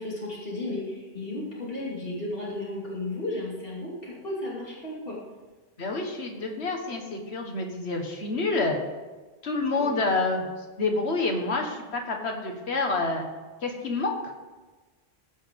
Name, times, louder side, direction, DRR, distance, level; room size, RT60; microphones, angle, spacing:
voice 1, 0.0-5.2 9.8-10.1, left 2 dB, 60° left, -5 dB, 3.0 m, -34 dB
voice 2, 5.8-8.8 9.4-10.5 10.8-13.3 13.6-14.1, left 3 dB, 85° left, 3 dB, 1.7 m, -28 dB
15.0 x 5.7 x 5.2 m, 1.3 s
omnidirectional pair, 1.1 m